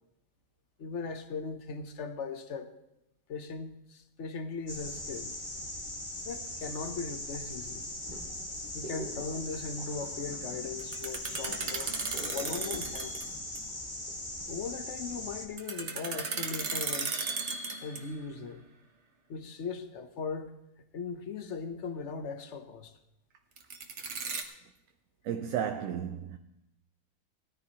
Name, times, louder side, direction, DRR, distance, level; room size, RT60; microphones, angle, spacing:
voice 1, 0.8-2.7 3.3-5.3 6.2-7.9 8.7-13.2 14.5-17.2 17.8-18.6 19.3-20.5 20.9-23.0, left 4 dB, 55° left, 1.2 m, -39 dB
sound 1, 4.7-15.5, left 1 dB, 35° left, 1.8 m, -40 dB
sound 2, 10.8-13.3 13.6-13.7 15.6-18.2 23.6-24.4, right 4 dB, 55° right, 1.4 m, -35 dB
voice 2, 25.2-26.4, right 8 dB, 75° right, 1.0 m, -33 dB
18.5 x 13.5 x 3.0 m
omnidirectional pair, 1.5 m